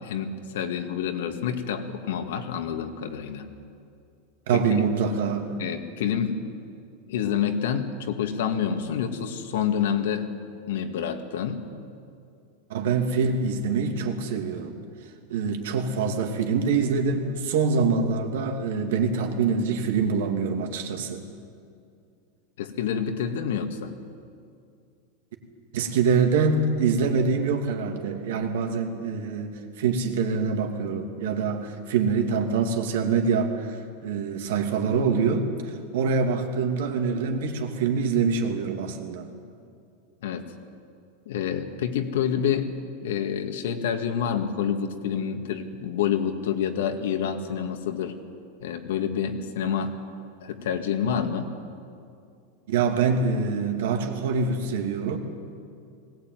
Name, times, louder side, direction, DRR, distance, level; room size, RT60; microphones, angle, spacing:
voice 1, 0.0-3.5 4.5-4.9 5.6-6.5 7.1-10.3 10.7-11.7 22.6-23.9 40.2-40.5 41.3-42.7 43.0-48.2 48.6-49.9 50.4-51.6, left 8 dB, 80° left, 6 dB, 2.0 m, -28 dB
voice 2, 4.5-5.6 12.7-14.8 15.3-21.2 25.7-39.3 52.7-55.2, right 5 dB, 70° right, 4 dB, 2.6 m, -25 dB
20.5 x 17.5 x 9.4 m, 2.4 s
supercardioid pair, 170°, 0 cm